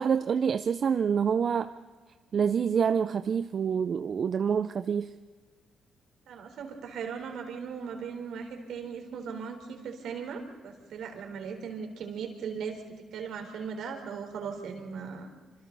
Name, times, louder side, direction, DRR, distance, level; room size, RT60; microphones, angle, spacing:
voice 1, 0.0-1.7 2.3-5.1, right 7 dB, 50° right, 10 dB, 0.6 m, -27 dB
voice 2, 6.3-12.8 13.1-15.3, right 6 dB, 75° right, 4 dB, 4.1 m, -38 dB
26.5 x 26.0 x 4.1 m, 1.5 s
cardioid pair, 90°, 0 cm